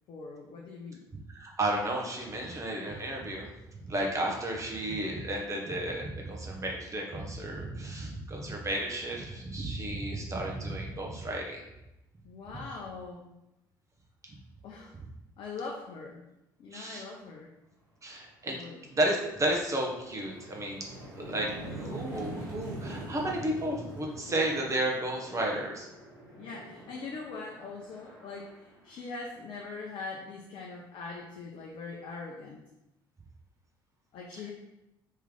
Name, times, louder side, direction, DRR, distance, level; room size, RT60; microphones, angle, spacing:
voice 1, 0.1-1.0 12.2-13.3 14.6-15.0 15.4-16.2 16.6-17.5 18.5-18.8 26.4-32.6 34.1-34.5, left 4 dB, 55° left, -1 dB, 0.6 m, -42 dB
voice 2, 1.4-3.5 3.9-11.6 16.7-17.0 18.0-18.6 18.9-20.9 21.2-21.5 21.8-25.9, right 1 dB, 30° right, -1 dB, 1.0 m, -32 dB
sound 1, 18.2-18.4 18.8-29.6, right 1 dB, 90° right, 0.9 m, -44 dB
3.2 x 3.1 x 3.8 m, 0.92 s
figure-of-eight pair, 50°, 11 cm